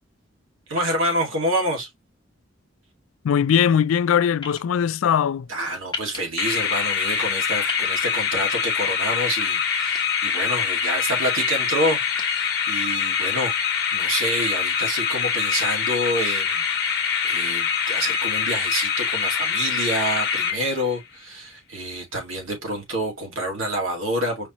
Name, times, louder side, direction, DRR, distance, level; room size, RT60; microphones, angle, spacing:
voice 1, 0.7-1.9 5.5-13.5 13.9-16.6 17.2-24.5, right 1 dB, 85° right, 2.0 m, -27 dB
voice 2, 3.2-5.5, left 8 dB, 85° left, 0.3 m, -20 dB
sound 1, 4.4-4.6 5.9-6.2 7.7-7.9 9.4-10.0 10.6-10.9 11.8-12.2, left 3 dB, 20° left, 1.0 m, -33 dB
sound 2, 6.4-21.0, left 7 dB, 50° left, 0.9 m, -24 dB
4.9 x 2.8 x 3.0 m
head